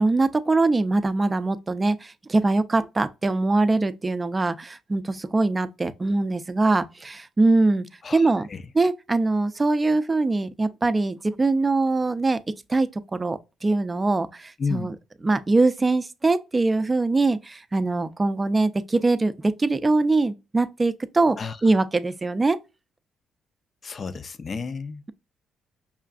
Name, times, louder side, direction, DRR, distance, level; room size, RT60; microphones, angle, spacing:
voice 1, 0.0-7.9 8.1-8.5 8.7-12.4 12.7-14.9 15.2-22.6, right 3 dB, 25° right, 0.4 m, -22 dB
voice 2, 8.0-8.6 14.6-14.9 21.4-21.6 23.8-25.1, left 4 dB, 40° left, 0.4 m, -32 dB
5.5 x 2.4 x 2.3 m
cardioid pair, 90°, 0 cm